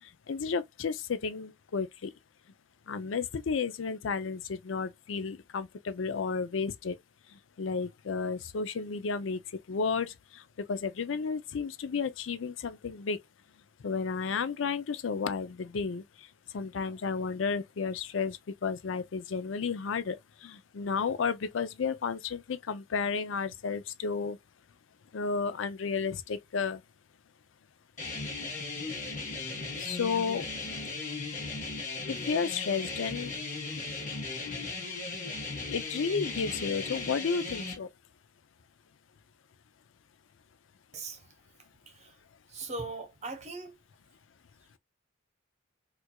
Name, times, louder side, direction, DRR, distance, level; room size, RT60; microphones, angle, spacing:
voice 1, 0.0-2.1 2.9-7.0 7.3-9.4 9.7-10.4 10.7-13.2 13.8-16.3 16.5-24.4 25.1-26.8 29.8-30.5 32.1-33.3 35.7-37.9, left 5 dB, 70° left, 0.5 m, -32 dB
sound 1, 28.0-37.8, left 3 dB, 40° left, 1.3 m, -37 dB
voice 2, 42.5-43.8, right 3 dB, 35° right, 0.9 m, -39 dB
4.4 x 2.5 x 2.2 m
head